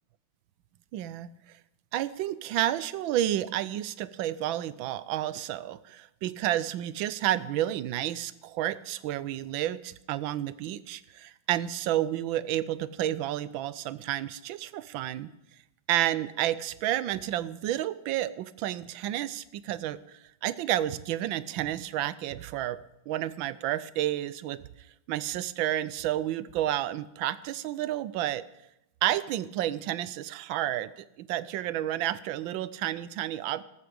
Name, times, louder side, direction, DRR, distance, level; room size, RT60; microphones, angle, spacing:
voice 1, 0.9-1.3 1.9-15.3 15.9-22.8 23.1-24.6 25.1-28.4 29.0-33.6, right 13 dB, 85° right, 17 dB, 1.4 m, -30 dB
14.0 x 12.5 x 5.2 m, 0.84 s
omnidirectional pair, 2.1 m